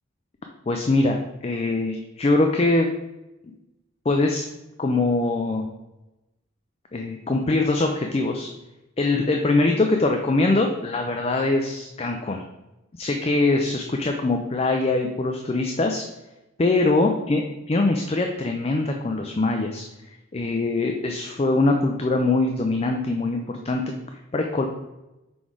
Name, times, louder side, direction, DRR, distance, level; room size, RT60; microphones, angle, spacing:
voice 1, 0.7-2.9 4.1-4.4 4.8-5.7 6.9-8.5 9.0-12.4 13.0-16.1 16.6-17.4 17.7-19.9 20.3-24.0 24.3-24.7, left 2 dB, 30° left, 3 dB, 0.4 m, -22 dB
6.1 x 4.7 x 3.7 m, 0.97 s
head